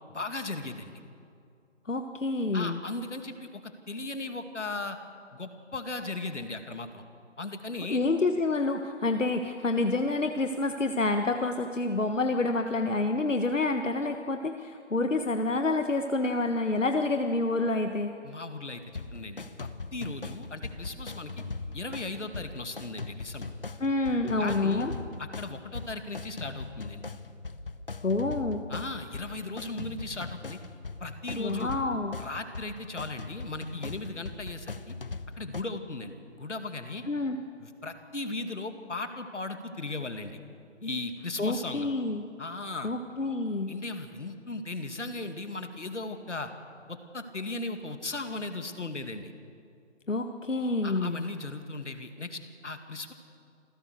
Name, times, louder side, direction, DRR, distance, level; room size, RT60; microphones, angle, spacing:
voice 1, 0.1-0.9 2.5-5.0 5.3-7.0 7.4-8.0 18.2-21.3 21.7-23.5 24.4-24.9 25.2-27.1 28.7-30.6 31.0-31.7 32.2-34.9 35.4-37.0 37.6-40.4 40.8-41.9 42.4-42.9 43.7-46.5 46.9-49.3 50.8-53.1, left 2 dB, 70° left, 7 dB, 2.4 m, -37 dB
voice 2, 1.9-2.8 7.9-18.1 23.8-24.9 28.0-28.6 31.3-32.1 37.1-37.4 41.4-42.2 42.8-43.7 50.1-51.2, left 2 dB, 85° left, 6 dB, 1.5 m, -28 dB
sound 1, 18.9-35.6, left 3 dB, 50° left, 0.9 m, -40 dB
27.0 x 15.5 x 6.6 m, 2.4 s
figure-of-eight pair, 170°, 37 cm